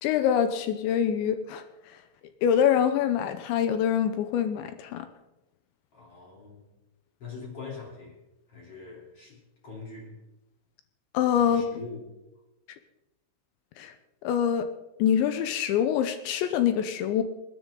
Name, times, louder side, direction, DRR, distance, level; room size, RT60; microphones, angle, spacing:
voice 1, 0.0-1.6 2.4-5.1 11.1-11.7 13.8-13.9 14.2-14.7 15.0-17.2, left 9 dB, 80° left, 9 dB, 2.8 m, -25 dB
voice 2, 5.9-6.7 7.2-8.2 8.5-9.4 9.6-10.1 11.4-12.0, left 4 dB, 30° left, -3 dB, 3.8 m, -42 dB
27.0 x 10.5 x 3.9 m, 0.98 s
omnidirectional pair, 5.8 m